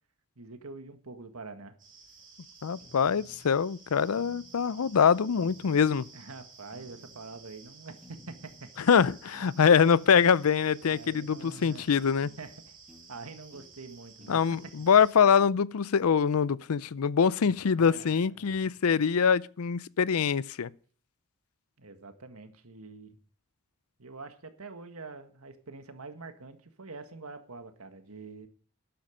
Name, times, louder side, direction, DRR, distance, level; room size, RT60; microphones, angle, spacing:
voice 1, 0.4-1.8 6.1-8.7 10.9-11.9 12.4-12.8 13.1-14.4 17.4-18.8 21.8-23.2 24.0-28.5, right 3 dB, 85° right, 1.7 m, -45 dB
sound 1, 1.8-15.1, right 4 dB, 40° right, 7.0 m, -54 dB
voice 2, 2.6-6.1 8.9-12.3 14.3-20.7, left 6 dB, 85° left, 0.5 m, -24 dB
sound 2, 2.8-3.5 4.1-4.8 5.4-6.1 6.7-7.4 8.0-8.7 9.3-10.0 11.6-11.8 12.2-12.4 12.9-13.1 13.5-13.7 14.2-14.4, equal, ahead, 2.6 m, -55 dB
13.0 x 10.5 x 5.1 m
head